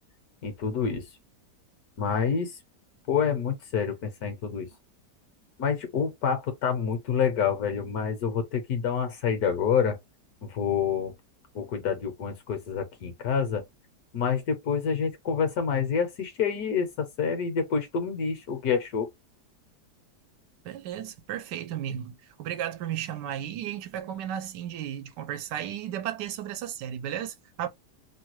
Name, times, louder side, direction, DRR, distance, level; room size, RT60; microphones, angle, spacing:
voice 1, 0.4-1.0 2.0-2.6 3.1-4.7 5.6-10.0 10.4-11.1 11.5-13.6 14.1-19.1, left 6 dB, 65° left, 1.2 m, -27 dB
voice 2, 20.6-27.7, right 10 dB, 90° right, 1.2 m, -34 dB
3.1 x 2.2 x 2.9 m
omnidirectional pair, 1.8 m